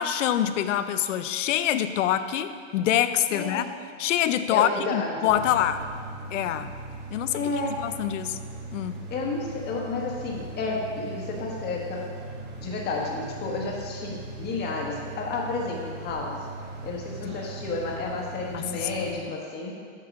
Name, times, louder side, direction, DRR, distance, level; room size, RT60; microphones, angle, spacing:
voice 1, 0.0-3.6 4.0-5.9 6.3-6.7 7.1-7.4 7.8-8.4 8.7-8.9 17.2-17.4 18.5-18.6 19.1-19.2, left 10 dB, 75° left, 12 dB, 0.6 m, -25 dB
voice 2, 3.3-3.7 4.5-5.3 7.3-7.8 9.1-12.1 12.6-16.5 16.8-19.8, left 3 dB, 25° left, 0 dB, 1.4 m, -31 dB
sound 1, 5.3-19.1, right 2 dB, 30° right, 1.1 m, -39 dB
8.6 x 4.7 x 6.0 m, 2.1 s
hypercardioid pair, 135°, 37 cm